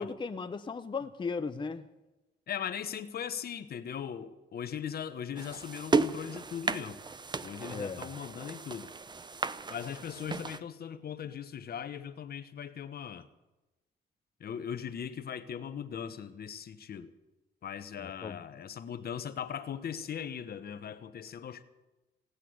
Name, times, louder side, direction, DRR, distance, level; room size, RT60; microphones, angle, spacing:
voice 1, 0.0-1.9 7.7-8.1 18.0-18.4, left 4 dB, 25° left, 0.7 m, -36 dB
voice 2, 2.5-7.0 7.4-8.9 9.7-13.3 14.4-17.1 17.6-21.6, left 8 dB, 55° left, 1.1 m, -39 dB
sound 1, 5.4-10.6, right 4 dB, 25° right, 0.6 m, -34 dB
17.0 x 8.3 x 9.5 m
cardioid pair, 100°, 19 cm